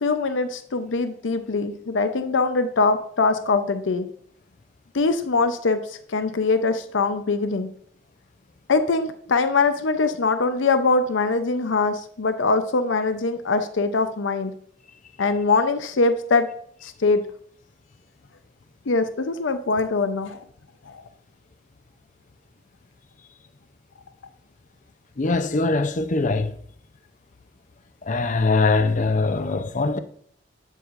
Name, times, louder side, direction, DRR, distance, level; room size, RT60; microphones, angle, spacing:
voice 1, 0.0-4.1 4.9-7.7 8.7-14.5 15.2-16.5 16.8-17.2 18.9-20.4 20.9-21.0, left 3 dB, 90° left, 0.6 m, -22 dB
voice 2, 25.2-26.5 28.1-30.0, left 3 dB, 40° left, 0.6 m, -22 dB
8.1 x 7.4 x 2.5 m
head